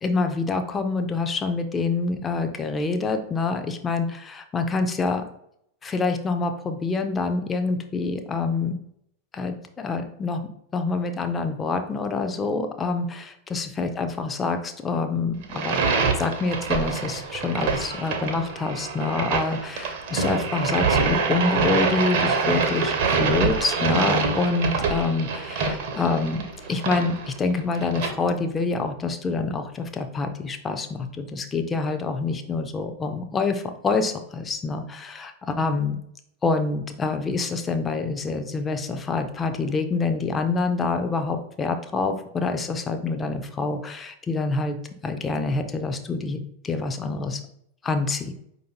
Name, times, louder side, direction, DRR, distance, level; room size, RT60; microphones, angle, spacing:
voice 1, 0.0-5.2 5.8-8.8 9.3-10.4 10.7-15.8 16.2-36.0 36.4-44.8 45.0-47.4 47.8-48.3, left 4 dB, 20° left, 7 dB, 0.4 m, -26 dB
sound 1, 15.4-28.1, right 4 dB, 50° right, 0.6 m, -25 dB
4.8 x 2.6 x 2.9 m, 0.73 s
figure-of-eight pair, 90°, 0 cm